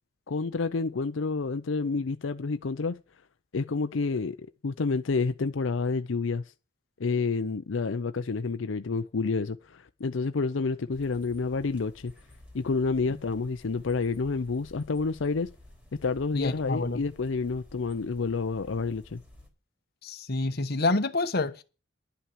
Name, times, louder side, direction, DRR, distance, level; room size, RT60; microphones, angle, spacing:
voice 1, 0.3-3.0 3.5-4.4 4.6-6.4 7.0-12.1 12.5-15.5 16.0-19.2, left 4 dB, 90° left, 0.6 m, -29 dB
sound 1, 10.9-19.5, left 1 dB, 10° right, 3.6 m, -53 dB
voice 2, 16.3-17.0 20.0-21.6, left 2 dB, 55° left, 1.2 m, -28 dB
11.5 x 5.7 x 9.0 m
head